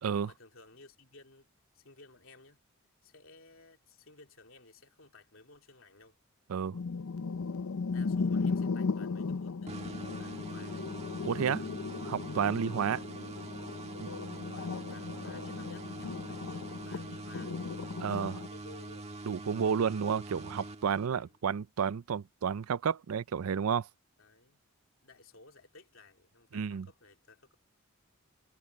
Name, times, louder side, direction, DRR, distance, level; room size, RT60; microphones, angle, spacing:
voice 1, 0.2-2.6 3.0-6.2 7.9-10.9 12.7-13.1 14.3-17.7 18.2-19.0 21.0-21.4 24.2-24.6 25.0-27.5, left 3 dB, 65° left, 3.3 m, -57 dB
sound 1, 6.7-18.5, left 4 dB, 85° left, 0.6 m, -36 dB
sound 2, 9.7-21.4, right 2 dB, 30° right, 1.5 m, -44 dB
voice 2, 11.2-11.6 12.0-13.0 14.0-14.1 18.0-18.4 19.3-23.9 26.5-26.9, right 7 dB, 85° right, 0.4 m, -31 dB
head